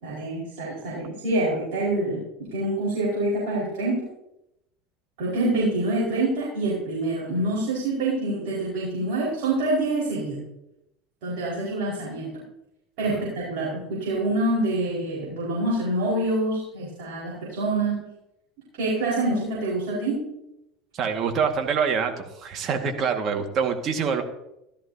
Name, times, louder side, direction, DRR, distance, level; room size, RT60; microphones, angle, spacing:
voice 1, 0.0-2.2 2.5-4.1 5.2-10.5 11.2-12.3 13.0-18.0 18.8-20.3, right 2 dB, 60° right, -7 dB, 5.2 m, -26 dB
voice 2, 20.9-24.2, right 6 dB, 45° right, 4 dB, 2.0 m, -25 dB
14.5 x 13.0 x 2.9 m, 0.85 s
figure-of-eight pair, 70°, 0 cm